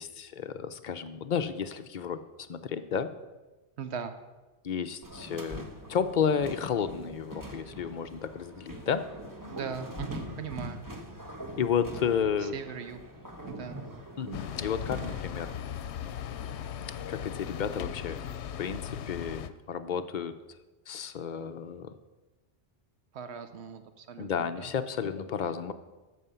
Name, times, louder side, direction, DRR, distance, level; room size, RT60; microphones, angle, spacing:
voice 1, 0.0-2.2 2.5-3.1 4.6-9.0 11.6-12.6 14.2-15.5 17.1-18.2 18.6-20.3 20.9-21.9 24.2-25.7, left 7 dB, 50° left, 9 dB, 0.7 m, -32 dB
voice 2, 3.8-4.1 9.5-10.8 12.4-13.0 13.5-13.9 23.1-24.7, right 7 dB, 80° right, 9 dB, 1.1 m, -39 dB
sound 1, 5.0-15.6, equal, 20° right, 1.1 m, -43 dB
sound 2, 14.3-19.5, left 9 dB, 85° left, 0.9 m, -38 dB
13.5 x 5.1 x 6.8 m, 1.2 s
omnidirectional pair, 1.1 m